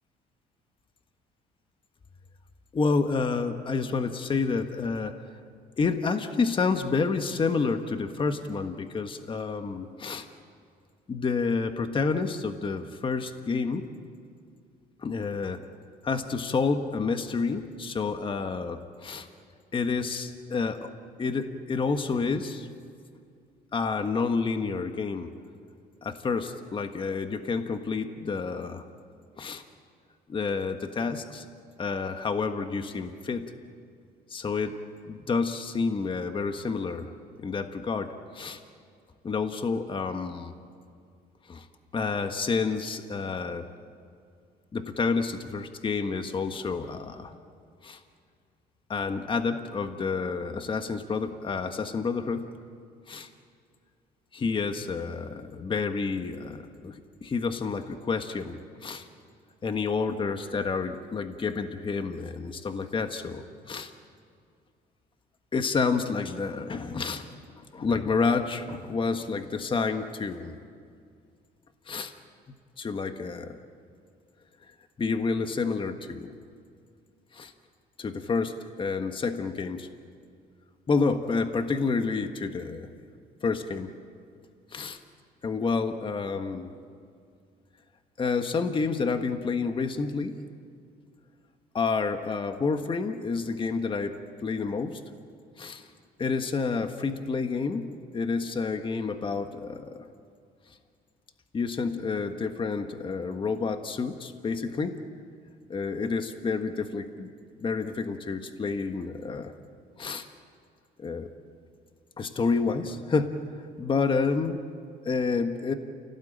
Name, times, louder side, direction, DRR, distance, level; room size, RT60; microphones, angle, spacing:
voice 1, 2.7-5.1 5.8-10.3 11.1-13.9 15.0-15.6 16.0-19.3 19.7-20.9 21.2-22.7 23.7-25.3 26.0-28.9 29.4-29.6 30.3-31.4 31.8-33.5 34.3-34.8 35.1-37.1 37.4-38.6 39.2-40.6 41.5-41.7 41.9-43.7 44.7-47.3 47.8-48.0 48.9-52.5 53.1-53.3 54.3-59.1 59.6-63.9 65.5-70.6 71.9-72.1 72.5-73.6 75.0-76.3 77.3-77.5 78.0-79.9 80.9-82.9 83.4-83.9 84.7-85.0 85.4-86.7 88.2-90.4 91.7-95.0 95.6-95.9 96.2-100.1 101.5-105.0 105.7-107.3 107.6-109.5 110.0-110.3 111.0-111.3 112.2-114.7 115.0-115.7, left 4 dB, 30° left, 7 dB, 1.5 m, -29 dB
29.0 x 18.0 x 8.9 m, 2.3 s
cardioid pair, 110°, 17 cm